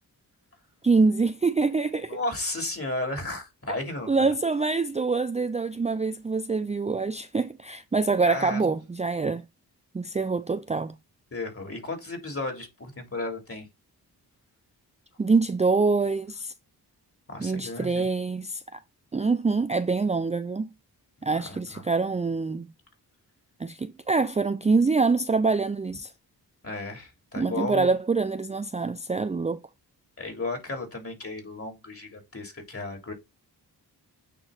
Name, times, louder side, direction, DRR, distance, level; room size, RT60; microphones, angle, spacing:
voice 1, 0.8-2.2 4.1-9.4 9.9-10.9 15.2-16.5 17.4-18.6 19.1-20.7 21.2-22.7 23.6-26.1 27.4-29.6, right 4 dB, 15° right, 0.4 m, -25 dB
voice 2, 2.1-4.3 8.2-8.8 11.3-13.7 17.3-18.1 21.3-21.9 26.6-27.9 30.2-33.1, left 2 dB, 35° left, 3.2 m, -34 dB
8.9 x 3.1 x 4.0 m
cardioid pair, 45°, 40 cm